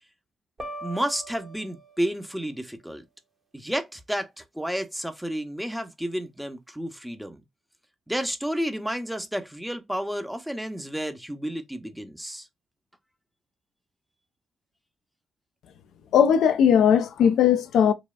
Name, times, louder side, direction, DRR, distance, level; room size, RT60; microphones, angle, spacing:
sound 1, 0.6-2.5, right 1 dB, 35° right, 1.1 m, -41 dB
voice 1, 0.8-3.0 3.5-7.4 8.1-12.5, equal, 5° right, 0.7 m, -31 dB
voice 2, 16.1-17.9, left 8 dB, 70° left, 0.3 m, -18 dB
4.0 x 2.2 x 2.2 m
hypercardioid pair, 45°, 0 cm